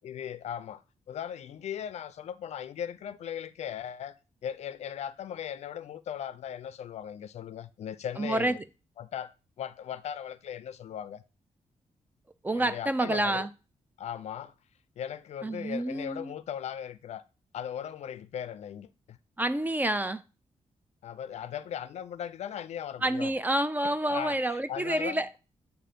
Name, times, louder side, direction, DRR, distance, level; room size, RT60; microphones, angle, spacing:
voice 1, 0.0-0.8 1.1-4.2 4.4-8.6 9.0-9.3 9.6-11.2 12.5-13.5 14.0-14.5 15.0-17.2 17.5-19.2 21.0-23.3 23.8-25.4, left 9 dB, 70° left, 0.4 m, -38 dB
voice 2, 8.2-8.6 12.4-13.5 15.4-16.3 19.4-20.2 23.0-25.3, right 1 dB, 15° right, 0.3 m, -28 dB
7.4 x 2.5 x 5.1 m
wide cardioid pair, 140°, 12 cm